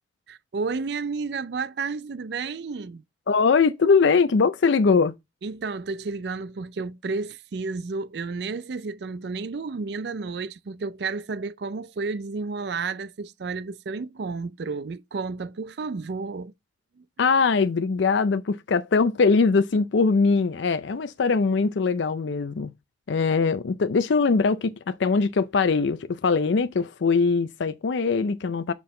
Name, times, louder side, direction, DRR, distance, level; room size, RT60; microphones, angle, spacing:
voice 1, 0.3-3.0 5.4-16.5 17.0-17.1, right 4 dB, 60° right, 0.4 m, -31 dB
voice 2, 3.3-5.1 17.2-22.7 23.1-28.7, left 4 dB, 70° left, 0.5 m, -21 dB
6.2 x 5.7 x 3.7 m
head